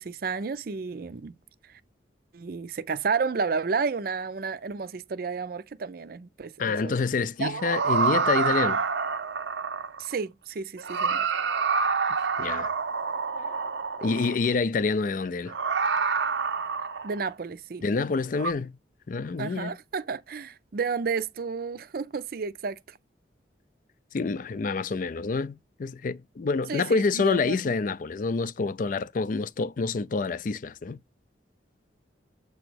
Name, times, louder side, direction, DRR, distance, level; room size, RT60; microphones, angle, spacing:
voice 1, 0.0-1.3 1.7-1.8 2.3-6.9 7.4-7.5 10.0-11.3 12.2-12.3 17.0-17.8 19.4-23.0 26.7-27.7, right 5 dB, 55° right, 0.5 m, -31 dB
voice 2, 6.6-8.8 12.4-12.7 14.0-15.5 17.8-18.8 19.1-19.7 24.1-31.0, left 4 dB, 45° left, 0.4 m, -27 dB
sound 1, 7.4-10.1 10.8-14.5 15.5-17.3 18.4-18.5, right 5 dB, 90° right, 0.7 m, -27 dB
7.7 x 2.9 x 6.1 m
head